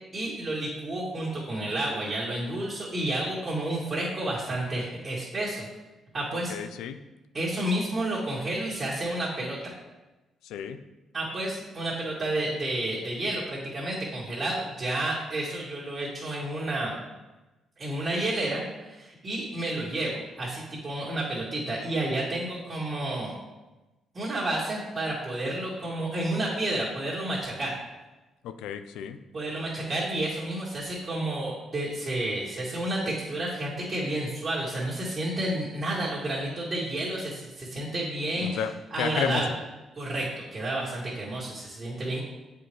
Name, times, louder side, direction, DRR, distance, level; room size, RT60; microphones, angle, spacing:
voice 1, 0.1-5.7 6.1-6.5 7.3-9.7 11.1-17.0 17.8-23.3 24.1-27.8 29.3-38.6 38.9-39.5 40.0-42.2, right 1 dB, 35° right, -8 dB, 1.9 m, -30 dB
voice 2, 6.3-7.0 10.4-10.8 28.4-29.2 38.4-39.4, left 8 dB, 90° left, 10 dB, 0.4 m, -32 dB
7.6 x 4.8 x 3.1 m, 1.1 s
cardioid pair, 90°, 0 cm